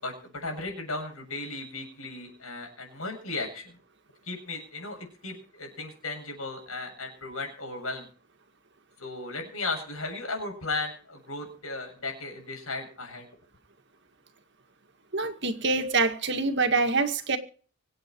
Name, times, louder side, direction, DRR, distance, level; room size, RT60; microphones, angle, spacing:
voice 1, 0.0-3.8 4.2-8.1 9.0-13.3, left 3 dB, 70° left, 7.7 m, -36 dB
voice 2, 15.1-17.4, right 3 dB, 50° right, 2.1 m, -25 dB
25.5 x 8.7 x 4.7 m
head